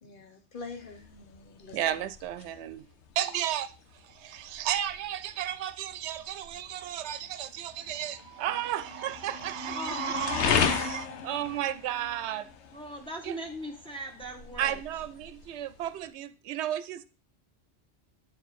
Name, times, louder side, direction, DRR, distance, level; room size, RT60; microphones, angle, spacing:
voice 1, 0.0-1.8, left 4 dB, 50° left, 1.2 m, -45 dB
sound 1, 0.6-16.1, left 6 dB, 90° left, 1.0 m, -36 dB
voice 2, 1.7-2.9 3.2-3.7 4.0-12.5 13.2-13.4 14.6-17.0, right 11 dB, 85° right, 0.9 m, -33 dB
voice 3, 9.7-10.7 12.7-14.8, right 1 dB, 5° left, 1.0 m, -39 dB
8.3 x 4.6 x 4.0 m
omnidirectional pair, 1.1 m